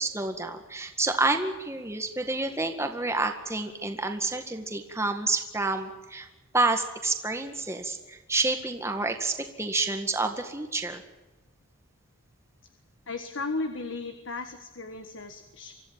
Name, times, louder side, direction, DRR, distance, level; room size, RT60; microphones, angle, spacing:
voice 1, 0.0-6.3 6.5-11.0, right 3 dB, 15° right, 5 dB, 1.9 m, -29 dB
voice 2, 13.1-15.7, left 3 dB, 60° left, 7 dB, 1.7 m, -35 dB
25.0 x 15.0 x 8.9 m, 1.1 s
head